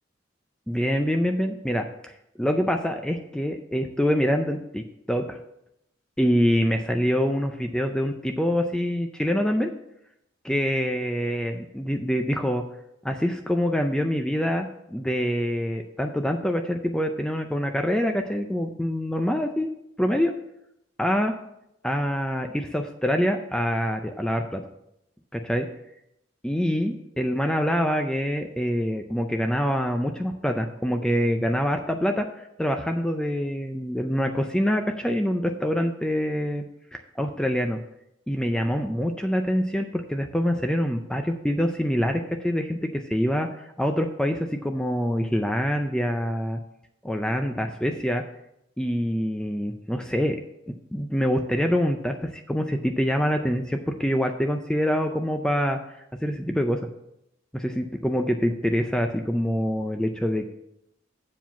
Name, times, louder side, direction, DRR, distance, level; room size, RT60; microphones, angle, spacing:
voice 1, 0.7-5.4 6.2-9.7 10.4-12.6 13.0-19.7 20.0-20.3 21.0-21.3 21.8-24.6 25.3-25.7 26.4-36.7 36.9-37.8 38.3-46.6 47.0-48.2 48.8-50.4 50.9-56.9 57.5-60.4, equal, 5° left, 5 dB, 0.4 m, -25 dB
7.5 x 4.8 x 7.0 m, 0.82 s
head